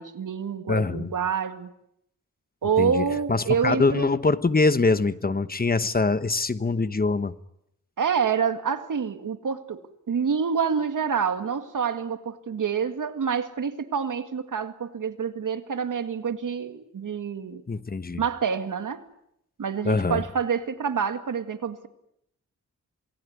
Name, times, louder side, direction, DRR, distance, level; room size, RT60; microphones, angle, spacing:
voice 1, 0.0-1.7 2.6-4.1 8.0-9.8 10.1-17.6 18.2-19.0 19.6-21.9, right 6 dB, 90° right, 9 dB, 2.1 m, -27 dB
voice 2, 0.7-1.1 2.8-7.3 17.7-18.2 19.8-20.2, left 3 dB, 30° left, 13 dB, 1.2 m, -24 dB
28.5 x 19.0 x 9.7 m, 0.78 s
wide cardioid pair, 125°, 30 cm